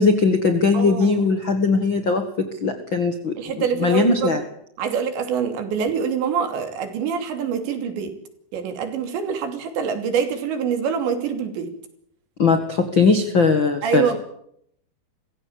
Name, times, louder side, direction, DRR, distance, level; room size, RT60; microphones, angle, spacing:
voice 1, 0.0-4.4 12.4-14.2, left 4 dB, 55° left, 7 dB, 1.4 m, -20 dB
voice 2, 0.7-1.2 3.4-4.4 4.8-8.1 8.5-11.7 13.8-14.2, right 7 dB, 90° right, 7 dB, 5.2 m, -25 dB
24.5 x 16.0 x 8.8 m, 0.70 s
omnidirectional pair, 5.0 m